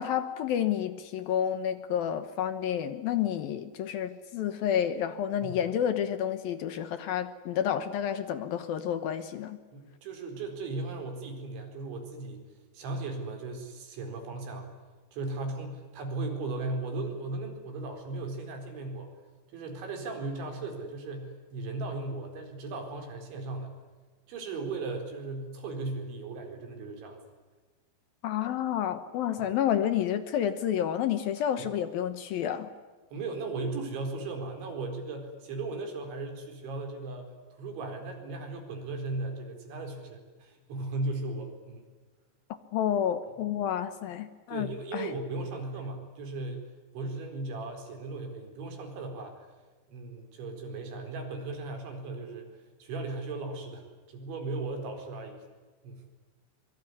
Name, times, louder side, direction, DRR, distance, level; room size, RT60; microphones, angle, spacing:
voice 1, 0.0-9.6 28.2-32.7 42.7-45.1, left 9 dB, 70° left, 11 dB, 2.5 m, -30 dB
voice 2, 9.7-12.4 12.7-14.7 15.1-19.1 19.5-23.7 24.3-27.2 29.4-29.5 31.6-31.7 33.1-41.9 44.5-46.6 46.9-49.5 49.9-55.4 55.8-56.0, right 3 dB, 90° right, 4 dB, 6.7 m, -37 dB
25.0 x 23.5 x 9.8 m, 1.3 s
omnidirectional pair, 5.1 m